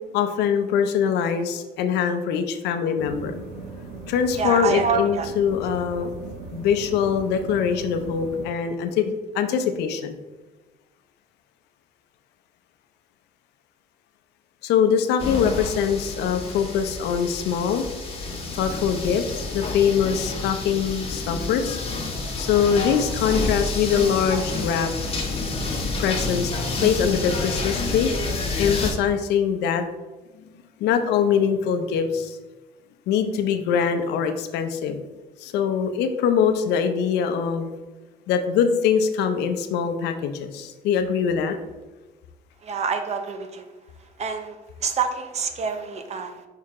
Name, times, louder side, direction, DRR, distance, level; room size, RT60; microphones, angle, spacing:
voice 1, 0.1-3.3 4.1-6.1 6.5-10.2 14.6-17.9 18.5-21.8 22.4-24.9 26.0-28.1 28.6-29.8 30.8-32.4 33.1-35.0 35.4-37.7 38.3-41.6, left 7 dB, 85° left, 7 dB, 0.7 m, -23 dB
sound 1, 3.0-8.5, right 3 dB, 85° right, 1.5 m, -38 dB
voice 2, 4.4-5.3 42.6-43.7 44.2-46.5, right 5 dB, 40° right, 7 dB, 0.8 m, -27 dB
sound 2, 15.2-28.9, left 3 dB, 35° left, 1.4 m, -29 dB
5.7 x 4.7 x 3.6 m, 1.2 s
cardioid pair, 110°, 17 cm